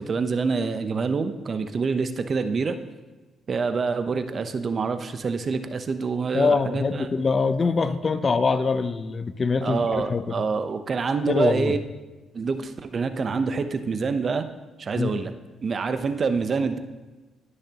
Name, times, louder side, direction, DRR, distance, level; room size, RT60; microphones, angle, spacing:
voice 1, 0.0-2.8 3.5-7.1 8.2-8.3 9.6-11.8 12.3-14.5 14.8-15.3 15.6-16.8, right 4 dB, 45° right, 9 dB, 0.8 m, -26 dB
voice 2, 6.3-10.3 11.3-11.7 15.0-15.1, left 4 dB, 40° left, 12 dB, 0.6 m, -23 dB
18.5 x 6.6 x 2.9 m, 1.2 s
cardioid pair, 75°, 0 cm